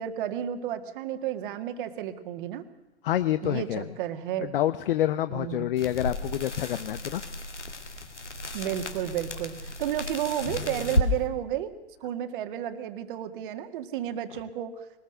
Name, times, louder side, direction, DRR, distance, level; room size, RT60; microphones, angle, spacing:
voice 1, 0.0-2.6 3.4-4.5 5.3-5.7 8.5-11.7 12.0-14.9, right 11 dB, 50° right, 9 dB, 1.9 m, -32 dB
voice 2, 3.0-3.9 4.4-7.2, left 12 dB, 50° left, 12 dB, 0.9 m, -27 dB
sound 1, 5.8-11.1, left 1 dB, 85° left, 2.4 m, -33 dB
21.5 x 20.0 x 6.6 m, 1.0 s
figure-of-eight pair, 100°, 34 cm